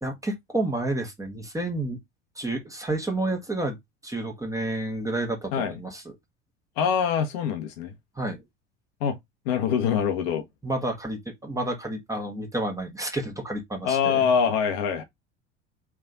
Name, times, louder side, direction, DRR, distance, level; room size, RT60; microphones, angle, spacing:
voice 1, 0.0-2.0 2.4-3.8 4.0-6.0 8.2-8.4 10.6-14.2, right 2 dB, 10° right, 1.5 m, -30 dB
voice 2, 6.8-7.9 9.0-9.2 9.4-10.4 13.8-15.0, left 7 dB, 55° left, 1.0 m, -24 dB
3.5 x 3.2 x 3.9 m
figure-of-eight pair, 75°, 37 cm